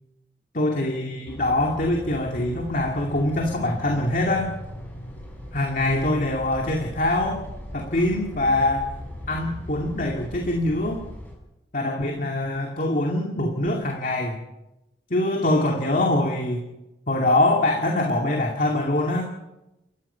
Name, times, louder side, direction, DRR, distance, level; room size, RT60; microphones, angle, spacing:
voice 1, 0.5-4.5 5.5-7.4 7.7-8.9 9.3-11.0 11.7-14.4 15.1-16.6 17.1-19.3, left 1 dB, 50° left, 1 dB, 2.4 m, -23 dB
sound 1, 1.3-11.3, left 1 dB, 10° left, 5.9 m, -38 dB
29.5 x 15.5 x 5.7 m, 0.97 s
head